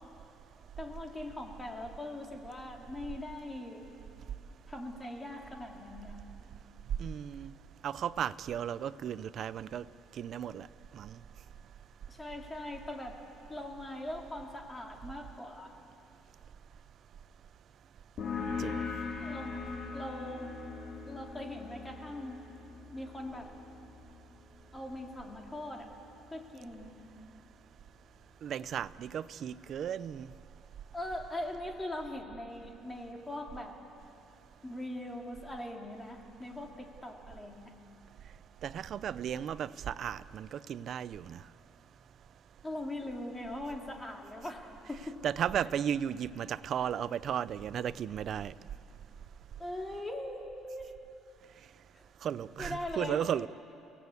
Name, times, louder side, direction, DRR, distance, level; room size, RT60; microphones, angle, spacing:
voice 1, 0.8-3.9 4.7-6.2 12.1-13.2 13.5-15.7 19.2-20.5 21.1-22.4 22.9-23.5 24.7-25.9 26.3-27.0 30.9-33.8 34.6-37.7 42.6-45.2 49.6-50.9 51.9-52.0 52.6-53.2, left 1 dB, 10° left, 2.5 m, -41 dB
voice 2, 7.0-7.5 7.8-9.9 10.2-10.7 10.9-11.2 18.6-18.7 28.4-30.3 38.6-41.4 45.2-48.5 52.2-53.5, right 9 dB, 45° right, 0.5 m, -35 dB
sound 1, 18.2-25.4, left 5 dB, 45° left, 3.9 m, -41 dB
29.5 x 18.0 x 8.2 m
cardioid pair, 150°, 0 cm